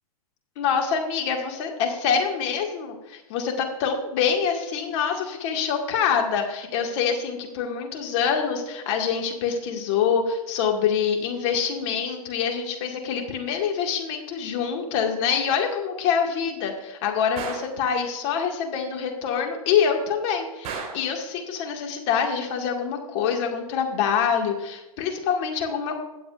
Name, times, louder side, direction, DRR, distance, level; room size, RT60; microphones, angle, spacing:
voice 1, 0.6-26.0, left 7 dB, 50° left, 2 dB, 2.0 m, -25 dB
Gunshot gunfire, 17.4-17.8 20.6-21.1, right 5 dB, 35° right, 3.1 m, -34 dB
21.5 x 7.7 x 2.5 m, 1.0 s
hypercardioid pair, 110°, 19 cm